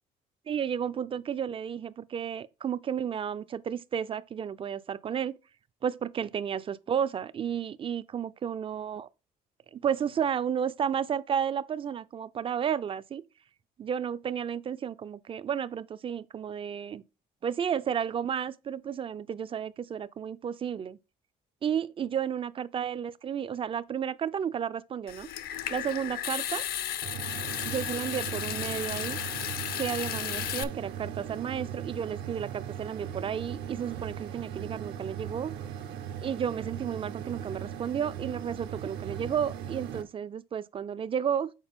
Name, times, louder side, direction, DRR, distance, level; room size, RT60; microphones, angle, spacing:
voice 1, 0.5-5.3 5.8-9.1 9.7-13.2 13.8-17.0 17.4-21.0 21.6-25.3 25.7-26.6 27.6-29.2 29.8-35.5 36.2-41.5, right 8 dB, 30° right, 0.4 m, -32 dB
Water tap faucet / Sink (filling or washing) / Trickle dribble, 25.1-30.6, left 11 dB, 65° left, 0.6 m, -34 dB
sound 1, 27.0-40.0, right 9 dB, 85° right, 1.0 m, -39 dB
7.3 x 4.2 x 3.5 m
cardioid pair, 110°, 17 cm